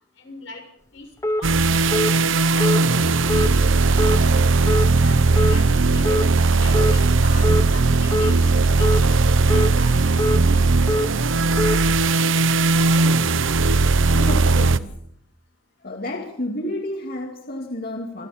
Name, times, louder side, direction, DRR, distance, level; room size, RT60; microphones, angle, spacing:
voice 1, 0.2-0.6 0.9-4.2 4.8-6.0 6.6-9.2 9.5-10.0 12.8-13.1, left 3 dB, 80° left, 4 dB, 6.6 m, -41 dB
sound 1, 1.2-1.4 1.9-2.1 2.6-2.8 3.3-3.5 4.0-4.2 4.7-4.9 5.4-5.6 6.0-6.3 6.7-6.9 7.4-7.6 8.1-8.3 8.8-9.0 9.5-9.7 10.2-10.4 10.9-11.1 11.6-11.8, left 1 dB, 15° left, 0.9 m, -23 dB
sound 2, 1.4-14.8, right 3 dB, 80° right, 0.9 m, -18 dB
voice 2, 14.1-14.9 15.8-18.3, left 1 dB, 50° left, 2 dB, 2.4 m, -30 dB
27.0 x 24.0 x 4.3 m, 0.67 s
head